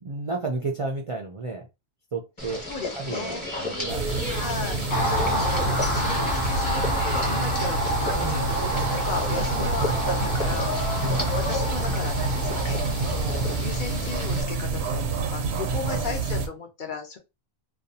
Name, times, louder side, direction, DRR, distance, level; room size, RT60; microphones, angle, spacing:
voice 1, 0.0-1.7 2.1-2.6 2.9-5.4 8.2-8.5 11.0-11.4 15.9-16.0, right 3 dB, 50° right, 1 dB, 0.4 m, -33 dB
sound 1, 2.4-14.4, left 2 dB, 30° left, 1.0 m, -34 dB
voice 2, 2.7-3.4 4.3-4.8 5.2-11.1 11.3-12.8 13.1-17.2, left 4 dB, 55° left, 3 dB, 0.8 m, -35 dB
sound 2, 3.9-16.5, right 4 dB, 85° right, 0.9 m, -28 dB
Car passing by, 4.9-14.3, left 1 dB, 80° left, 1.0 m, -29 dB
2.6 x 2.2 x 2.6 m, 0.24 s
omnidirectional pair, 1.0 m